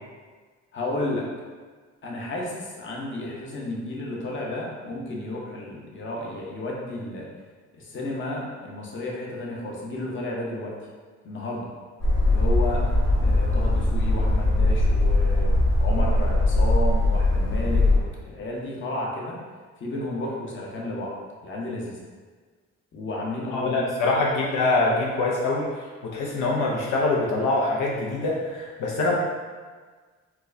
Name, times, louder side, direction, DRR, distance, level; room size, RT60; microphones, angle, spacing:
voice 1, 0.7-1.2 2.0-7.3 7.7-10.7 11.2-11.7 12.3-15.5 15.8-19.4 19.8-21.1 21.4-22.0 22.9-24.2, left 1 dB, 40° left, -3 dB, 0.8 m, -32 dB
sound 1, 12.0-18.0, left 2 dB, 55° left, 1.4 m, -21 dB
voice 2, 23.5-29.2, left 2 dB, 80° left, -3 dB, 0.6 m, -24 dB
4.4 x 2.2 x 2.6 m, 1.5 s
cardioid pair, 90°, 30 cm